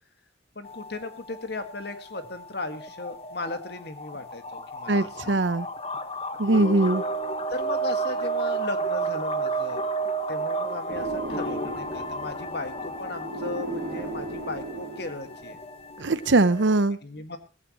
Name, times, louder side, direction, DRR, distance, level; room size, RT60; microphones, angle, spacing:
voice 1, 0.6-5.5 7.5-9.9 10.3-15.6 17.0-17.4, left 2 dB, 60° left, 8 dB, 1.9 m, -36 dB
sound 1, 0.6-16.8, right 3 dB, 35° left, 1.3 m, -32 dB
voice 2, 4.9-5.7 6.4-7.0 16.0-17.0, right 2 dB, 80° right, 16 dB, 0.8 m, -21 dB
sound 2, 10.9-15.5, right 2 dB, 50° right, 2.5 m, -37 dB
17.0 x 15.5 x 3.0 m, 0.31 s
head